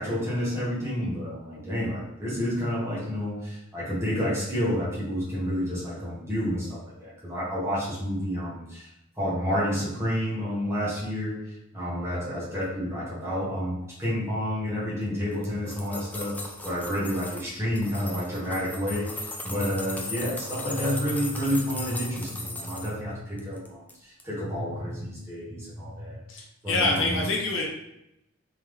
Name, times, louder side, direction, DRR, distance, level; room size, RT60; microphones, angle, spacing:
voice 1, 0.0-8.9 9.2-16.3 16.6-26.2 26.6-27.2, equal, 10° right, -8 dB, 1.5 m, -30 dB
sound 1, 15.3-17.5 17.8-23.0 23.4-23.9 24.2-24.3, left 2 dB, 5° left, 0.3 m, -37 dB
voice 2, 26.3-27.6, left 2 dB, 55° left, -1 dB, 0.7 m, -26 dB
3.6 x 3.5 x 3.2 m, 0.83 s
head